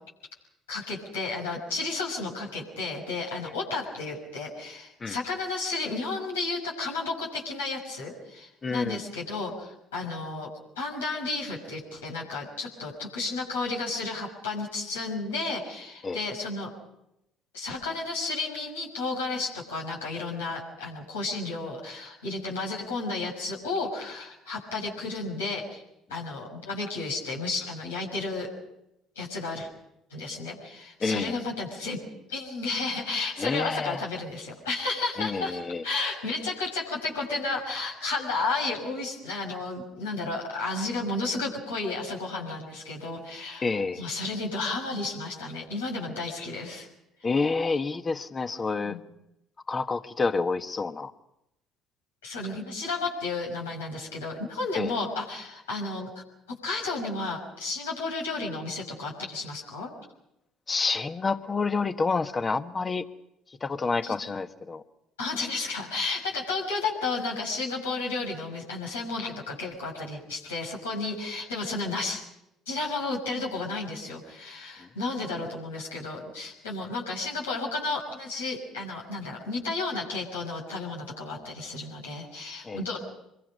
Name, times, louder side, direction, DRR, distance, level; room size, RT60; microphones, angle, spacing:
voice 1, 0.7-10.5 10.8-16.7 17.5-25.8 26.1-28.5 29.2-29.7 30.1-32.0 32.3-46.9 47.2-47.5 48.8-49.0 52.2-56.1 56.6-59.9 64.0-64.1 65.2-72.2 72.7-83.0, left 3 dB, 90° left, -2 dB, 6.0 m, -32 dB
voice 2, 8.6-9.0 16.0-16.2 31.0-31.3 33.4-34.0 35.2-35.8 43.6-44.1 47.2-49.0 49.7-51.1 54.7-54.9 60.7-63.0 63.6-64.8 82.6-82.8, left 4 dB, 30° left, 9 dB, 1.4 m, -28 dB
26.0 x 22.5 x 5.4 m, 0.85 s
hypercardioid pair, 60°, 0 cm